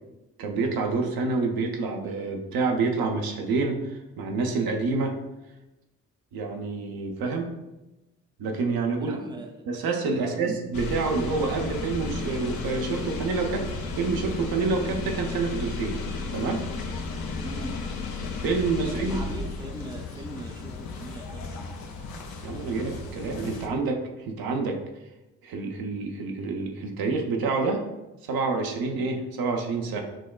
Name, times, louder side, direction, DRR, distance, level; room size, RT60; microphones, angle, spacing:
voice 1, 0.4-5.1 6.3-7.5 8.4-9.2 9.7-13.7 14.0-16.0 16.3-16.7 18.4-19.2 22.4-24.0 24.3-24.8 25.4-27.8 28.3-30.0, right 4 dB, 70° right, 2 dB, 0.6 m, -27 dB
voice 2, 9.1-9.5 10.1-10.5 17.4-17.8 18.8-21.6, right 2 dB, 10° right, 2 dB, 0.6 m, -40 dB
sound 1, 10.7-23.7, left 4 dB, 70° left, 0.6 m, -34 dB
5.9 x 2.1 x 2.3 m, 1.0 s
hypercardioid pair, 40°, 38 cm